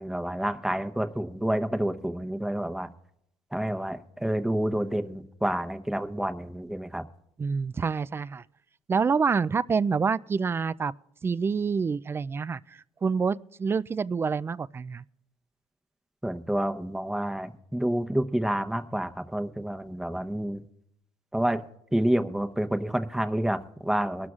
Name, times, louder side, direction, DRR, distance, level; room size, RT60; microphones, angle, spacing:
voice 1, 0.0-2.9 3.5-7.0 16.2-20.6 21.3-21.6 21.9-24.3, right 1 dB, 5° right, 0.8 m, -29 dB
voice 2, 7.4-8.4 8.9-10.9 11.2-15.0, right 5 dB, 25° right, 0.4 m, -27 dB
22.0 x 12.5 x 2.5 m
supercardioid pair, 90°, 10 cm